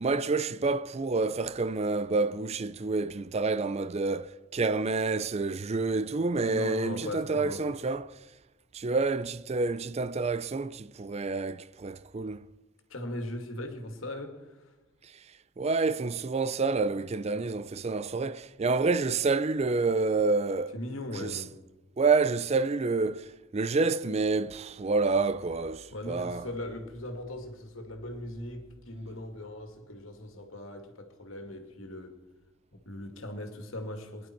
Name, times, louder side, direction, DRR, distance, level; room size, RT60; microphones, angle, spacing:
voice 1, 0.0-8.2 8.7-12.5 15.6-20.8 21.1-21.4 22.0-26.5, right 3 dB, 30° right, 0.4 m, -28 dB
voice 2, 6.5-7.6 12.9-14.4 20.7-21.6 25.9-32.1 32.9-34.3, left 1 dB, 90° left, 2.3 m, -39 dB
21.0 x 11.0 x 4.6 m
head